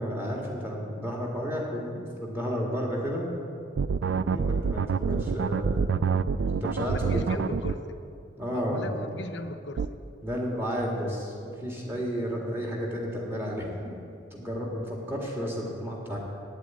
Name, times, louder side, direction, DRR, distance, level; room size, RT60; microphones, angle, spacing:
voice 1, 0.0-3.4 4.0-7.5 8.4-8.9 10.2-13.9 14.3-16.2, equal, 10° right, -2 dB, 1.9 m, -32 dB
sound 1, 3.8-7.7 9.8-9.9, right 6 dB, 65° right, 0.3 m, -26 dB
voice 2, 6.8-8.0 8.5-9.9, left 2 dB, 65° left, 8 dB, 0.7 m, -38 dB
8.8 x 8.1 x 9.3 m, 2.5 s
head